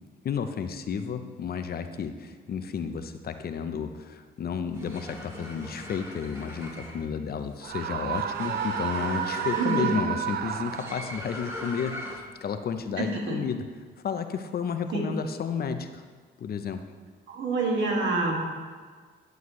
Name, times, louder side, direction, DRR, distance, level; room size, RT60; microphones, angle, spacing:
voice 1, 0.2-13.6 14.0-16.0 16.4-16.8, left 6 dB, 50° left, 8 dB, 0.7 m, -32 dB
sound 1, 4.7-12.4, left 1 dB, 15° right, 2.1 m, -40 dB
Screaming, 7.6-11.3, right 9 dB, 55° right, 0.4 m, -31 dB
voice 2, 9.5-10.0 13.0-13.4 14.9-15.0 17.3-18.5, right 3 dB, 70° right, -1 dB, 2.1 m, -27 dB
11.5 x 7.8 x 3.2 m, 1.5 s
cardioid pair, 90°, 20 cm